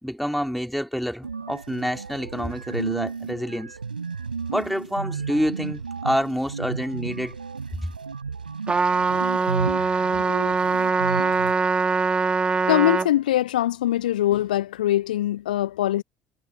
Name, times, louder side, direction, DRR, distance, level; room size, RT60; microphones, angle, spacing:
voice 1, 0.0-3.7 4.5-7.3 7.8-7.9, equal, ahead, 4.0 m, -27 dB
sound 1, 1.2-11.5, right 5 dB, 80° right, 4.4 m, -33 dB
Trumpet, 8.7-13.1, right 4 dB, 20° right, 1.8 m, -22 dB
voice 2, 12.7-16.0, left 13 dB, 70° left, 0.8 m, -22 dB
figure-of-eight pair, 60°, 5 cm